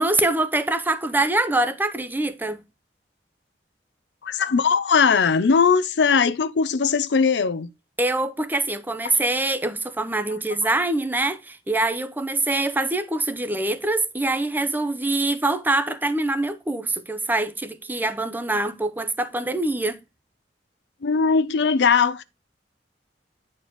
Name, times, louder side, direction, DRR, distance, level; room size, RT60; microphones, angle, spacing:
voice 1, 0.0-2.6 8.0-20.0, right 2 dB, 10° right, 0.6 m, -24 dB
voice 2, 4.2-7.7 21.0-22.2, left 5 dB, 75° left, 0.5 m, -19 dB
9.4 x 4.4 x 3.0 m
head